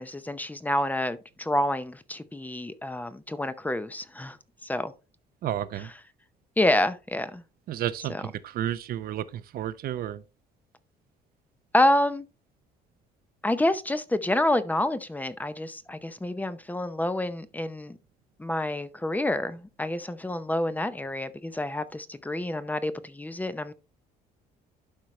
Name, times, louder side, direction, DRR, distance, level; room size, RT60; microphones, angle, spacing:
voice 1, 0.0-4.4 4.6-4.9 5.7-5.9 6.6-7.4 8.1-8.3 11.7-12.3 13.4-18.0 18.4-23.7, left 1 dB, 10° left, 0.7 m, -28 dB
voice 2, 5.4-5.9 7.7-10.2, right 11 dB, 60° right, 0.7 m, -32 dB
12.0 x 4.6 x 3.1 m
cardioid pair, 110°, 17 cm